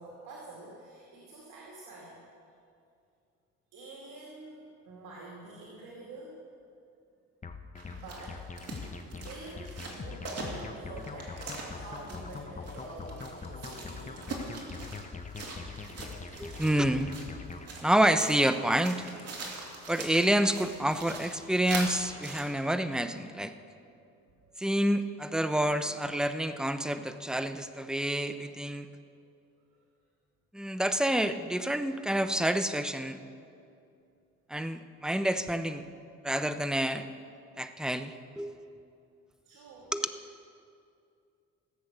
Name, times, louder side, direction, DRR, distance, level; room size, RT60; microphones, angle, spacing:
voice 1, 0.0-2.2 3.7-6.4 7.9-8.4 8.7-14.3 23.8-24.0 24.3-24.5 39.4-39.9, right 2 dB, 85° right, -3 dB, 2.3 m, -47 dB
sound 1, 7.4-17.7, left 4 dB, 25° left, 0.9 m, -43 dB
sound 2, 7.8-22.4, right 3 dB, 55° right, 2.5 m, -43 dB
voice 2, 16.4-17.1 17.8-19.1 19.9-23.5 24.6-28.9 30.5-33.2 34.5-35.9 36.2-37.1 37.6-38.6 39.9-40.1, right 1 dB, ahead, 10 dB, 0.7 m, -28 dB
16.5 x 7.7 x 6.7 m, 2.5 s
cardioid pair, 90°, 30 cm